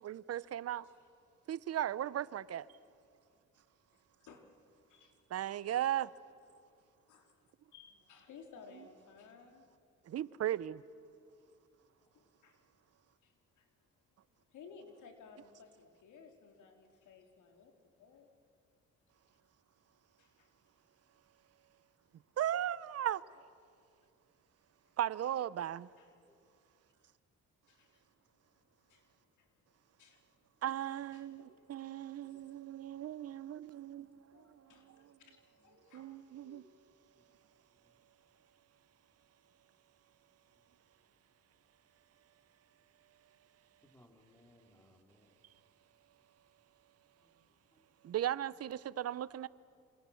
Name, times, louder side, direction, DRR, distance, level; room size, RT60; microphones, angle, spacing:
voice 1, 0.0-0.9 1.5-2.7 5.3-6.1 10.1-10.8 22.4-23.2 25.0-25.9 30.6-34.5 34.9-35.1 35.9-36.6 48.0-49.5, right 11 dB, 55° right, 0.8 m, -37 dB
voice 2, 4.2-5.3 6.5-6.8 7.1-7.4 7.7-9.7 12.1-12.6 13.2-13.9 14.5-18.3 20.2-20.5 24.8-24.9 26.0-26.1 27.7-28.1 28.8-29.7 30.0-30.3 31.1-32.5 34.3-36.7, left 5 dB, 75° left, 3.4 m, -59 dB
voice 3, 43.8-45.3 47.2-47.3 47.7-48.1, left 1 dB, 10° left, 3.6 m, -66 dB
27.5 x 27.0 x 7.1 m
cardioid pair, 90°, 30 cm